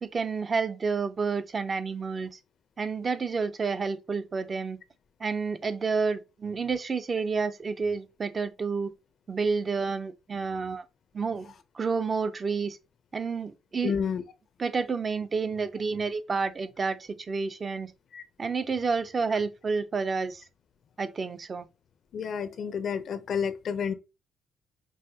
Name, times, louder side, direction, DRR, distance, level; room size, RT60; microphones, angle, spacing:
voice 1, 0.0-2.3 2.8-4.8 5.2-8.9 9.3-10.8 11.1-12.8 13.1-13.9 14.6-17.9 18.4-20.4 21.0-21.7, right 4 dB, 40° right, 0.5 m, -30 dB
voice 2, 13.8-14.2 18.1-18.2 22.1-23.9, left 7 dB, 60° left, 0.6 m, -30 dB
5.5 x 2.5 x 2.8 m
cardioid pair, 90°, 0 cm